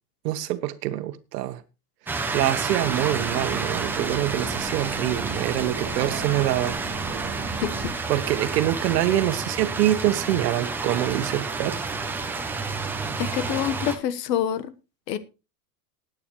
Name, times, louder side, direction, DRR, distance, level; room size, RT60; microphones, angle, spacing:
voice 1, 0.2-1.6 2.1-6.8 7.5-7.6 8.1-11.8, right 14 dB, 75° right, 1.5 m, -25 dB
sound 1, 2.1-14.0, right 4 dB, 5° right, 0.6 m, -30 dB
Bus, 2.8-7.8, right 4 dB, 20° right, 1.2 m, -36 dB
voice 2, 7.6-7.9 13.2-14.7 15.1-15.2, left 10 dB, 80° left, 1.4 m, -26 dB
19.0 x 9.1 x 3.2 m
supercardioid pair, 170°, 48 cm